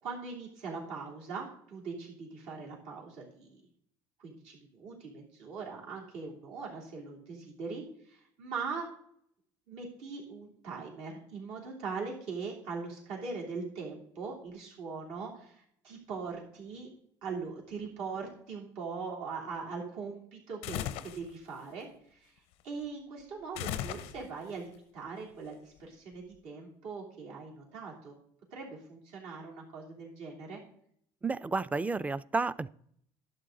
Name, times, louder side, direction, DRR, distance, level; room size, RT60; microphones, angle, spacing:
voice 1, 0.0-3.6 4.2-8.8 9.7-16.9 17.2-22.3 22.6-28.1 28.5-30.6, right 4 dB, 80° right, -2 dB, 3.0 m, -41 dB
sound 1, 20.6-21.3 23.6-24.5, left 11 dB, 85° left, 0.6 m, -36 dB
voice 2, 31.2-32.7, right 3 dB, 15° right, 16 dB, 0.4 m, -31 dB
11.5 x 8.0 x 3.9 m, 0.66 s
supercardioid pair, 100°, 11 cm